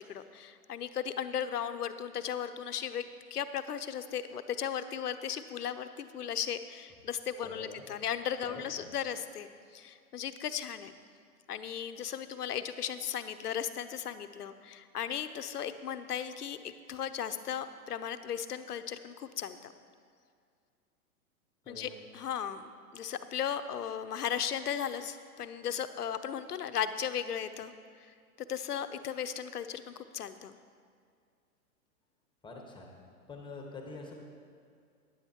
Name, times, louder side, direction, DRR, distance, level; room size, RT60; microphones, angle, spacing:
voice 1, 0.0-9.5 9.7-10.9 11.5-19.7 21.7-22.7 22.9-27.7 28.5-30.6, left 9 dB, 80° left, 11 dB, 0.7 m, -36 dB
voice 2, 7.4-7.9 8.4-8.9 21.6-22.0 32.4-32.9 33.3-34.1, left 3 dB, 10° left, 1 dB, 1.3 m, -46 dB
14.5 x 10.0 x 2.9 m, 2.2 s
hypercardioid pair, 115°, 46 cm